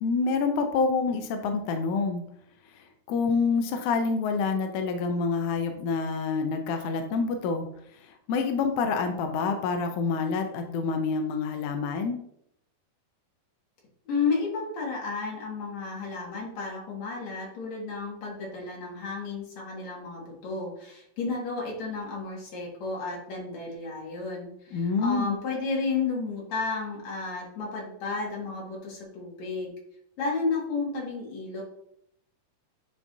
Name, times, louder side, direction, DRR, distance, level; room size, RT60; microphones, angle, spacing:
voice 1, 0.0-2.2 3.1-7.7 8.0-12.2 24.7-25.4, left 4 dB, 85° left, 5 dB, 1.7 m, -27 dB
voice 2, 14.1-29.7 30.2-31.6, left 4 dB, 55° left, -2 dB, 2.8 m, -32 dB
9.8 x 4.8 x 2.7 m, 0.72 s
omnidirectional pair, 4.3 m